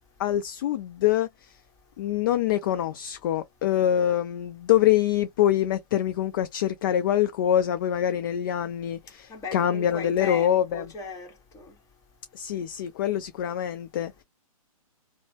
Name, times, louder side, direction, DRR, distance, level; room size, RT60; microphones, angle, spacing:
voice 1, 0.2-1.5 2.0-10.9 12.3-14.2, left 11 dB, 35° left, 0.4 m, -25 dB
voice 2, 9.3-11.7, left 3 dB, 15° left, 1.3 m, -37 dB
2.9 x 2.0 x 2.8 m
figure-of-eight pair, 130°, 19 cm